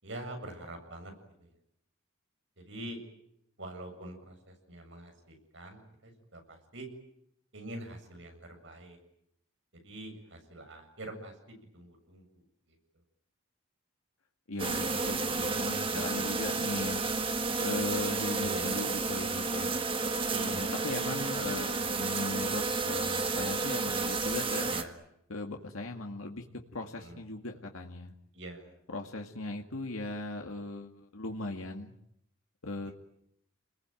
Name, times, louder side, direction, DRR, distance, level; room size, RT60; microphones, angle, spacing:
voice 1, 0.0-1.1 1.4-1.5 2.6-3.0 3.6-6.9 7.5-9.0 9.8-12.2 15.9-16.4 18.4-18.8 20.3-20.7 24.7-24.9 27.0-27.2 28.3-28.7, right 1 dB, 60° right, 4 dB, 7.7 m, -44 dB
voice 2, 14.5-17.0 17.6-19.7 20.4-24.7 25.3-26.4 26.7-28.1 28.9-31.9 32.6-32.9, left 2 dB, 90° left, 3 dB, 2.1 m, -38 dB
sound 1, 14.6-24.8, right 3 dB, 25° right, 1.7 m, -31 dB
29.5 x 21.0 x 9.2 m, 0.76 s
head